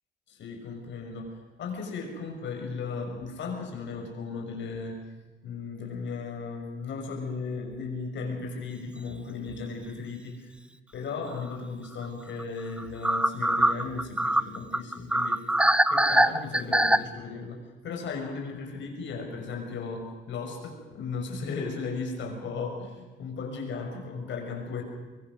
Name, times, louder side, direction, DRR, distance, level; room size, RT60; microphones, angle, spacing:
voice 1, 0.3-5.0 5.4-10.5 10.9-15.4 15.9-24.8, left 4 dB, 70° left, 2 dB, 6.5 m, -36 dB
sound 1, 8.9-9.1 9.5-9.6 12.0-12.1 12.4-12.5 12.8-17.0, right 1 dB, 5° right, 0.8 m, -23 dB
23.5 x 23.0 x 6.4 m, 1.2 s
cardioid pair, 90°, 20 cm